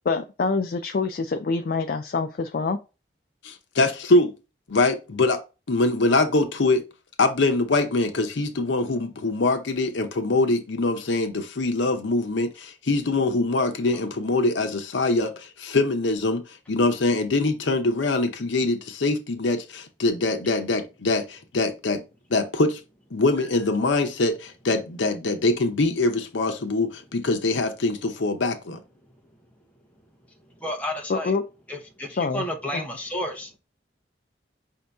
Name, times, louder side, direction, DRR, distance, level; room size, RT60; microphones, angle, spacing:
voice 1, 0.1-2.8 31.1-31.4 32.2-32.4 32.7-32.8, left 4 dB, 50° left, 0.3 m, -25 dB
voice 2, 3.4-4.3 4.7-5.4 5.7-6.8 7.2-16.4 16.7-22.0 22.3-22.8 23.1-28.8, left 2 dB, 80° left, 0.7 m, -23 dB
voice 3, 30.6-31.3 31.7-33.6, left 1 dB, 10° left, 0.7 m, -31 dB
5.3 x 2.8 x 3.4 m
head